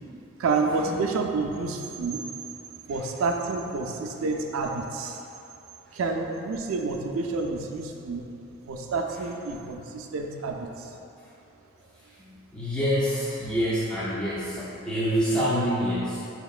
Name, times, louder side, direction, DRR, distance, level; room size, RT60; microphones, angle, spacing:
voice 1, 0.4-2.2 2.9-5.2 5.9-8.3 8.7-10.9, right 3 dB, 80° right, 2 dB, 0.4 m, -29 dB
voice 2, 11.8-16.2, equal, 5° left, -9 dB, 0.3 m, -28 dB
5.1 x 2.9 x 2.3 m, 2.8 s
head